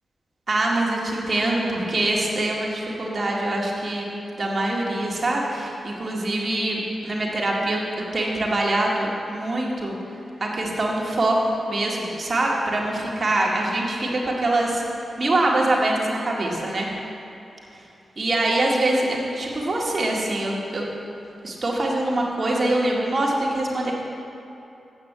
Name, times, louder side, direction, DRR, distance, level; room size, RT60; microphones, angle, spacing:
voice 1, 0.5-4.1 4.4-7.8 8.1-9.9 10.4-16.9 18.2-20.8 21.4-23.9, right 1 dB, 50° right, -2 dB, 1.9 m, -24 dB
8.5 x 6.5 x 7.5 m, 2.8 s
cardioid pair, 60°, 0 cm